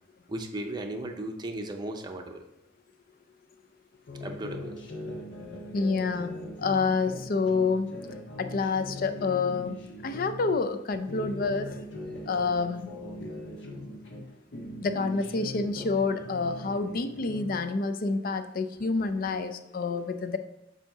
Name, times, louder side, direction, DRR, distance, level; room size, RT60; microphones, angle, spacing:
voice 1, 0.3-2.4 4.2-4.8 11.2-11.5, right 1 dB, 25° right, 3 dB, 0.6 m, -36 dB
sound 1, 4.1-10.5 11.0-14.3 14.5-17.7, left 1 dB, 70° left, 1.1 m, -40 dB
voice 2, 5.7-6.3 6.6-7.9 8.4-9.8 10.0-11.8 12.3-12.9 14.8-20.4, left 4 dB, 50° left, 9 dB, 0.5 m, -28 dB
7.3 x 2.8 x 5.5 m, 0.86 s
head